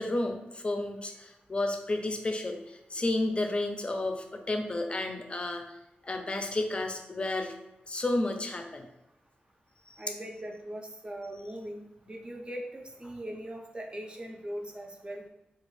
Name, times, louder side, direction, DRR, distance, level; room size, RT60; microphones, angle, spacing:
voice 1, 0.0-5.6 6.0-7.5 7.9-8.9 9.9-10.0, left 2 dB, 35° left, 4 dB, 0.5 m, -31 dB
voice 2, 10.0-15.2, right 1 dB, 30° right, 1 dB, 0.6 m, -40 dB
3.0 x 2.4 x 3.1 m, 0.93 s
cardioid pair, 55°, 3 cm